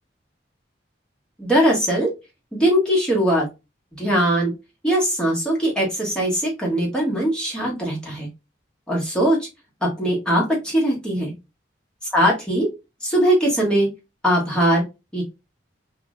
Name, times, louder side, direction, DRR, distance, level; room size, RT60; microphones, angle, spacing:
voice 1, 1.4-2.1 2.5-3.4 4.0-4.5 4.8-8.3 8.9-9.4 9.8-11.3 12.1-12.7 13.0-13.9 14.2-14.8 15.1-15.2, equal, 5° left, -3 dB, 1.2 m, -20 dB
3.1 x 2.5 x 3.6 m, 0.25 s
head